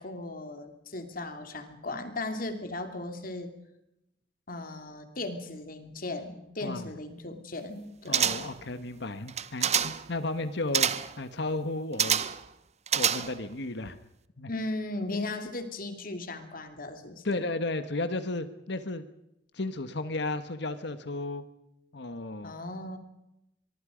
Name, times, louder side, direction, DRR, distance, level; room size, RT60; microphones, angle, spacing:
voice 1, 0.0-3.5 4.5-8.4 14.5-17.4 22.4-23.0, left 2 dB, 50° left, 7 dB, 2.8 m, -37 dB
voice 2, 8.1-10.9 11.2-12.3 12.9-14.0 14.4-14.5 17.2-19.0 19.5-21.4 21.9-22.5, left 2 dB, 65° left, 11 dB, 1.4 m, -33 dB
sound 1, 8.1-8.6 9.3-10.1 10.7-11.2 12.0-12.5 12.9-13.5 13.9-14.0, right 8 dB, 40° right, 0.9 m, -27 dB
23.5 x 23.5 x 5.2 m, 0.84 s
head